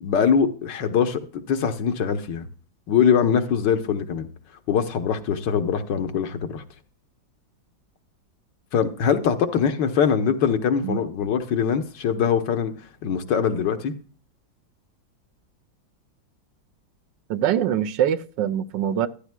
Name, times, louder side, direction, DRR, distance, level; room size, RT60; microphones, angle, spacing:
voice 1, 0.0-2.5 2.9-4.3 4.7-6.6 8.7-12.7 13.0-13.9, left 7 dB, 70° left, 1.6 m, -22 dB
voice 2, 17.3-19.1, right 10 dB, 75° right, 1.3 m, -23 dB
14.0 x 11.5 x 2.2 m
omnidirectional pair, 2.0 m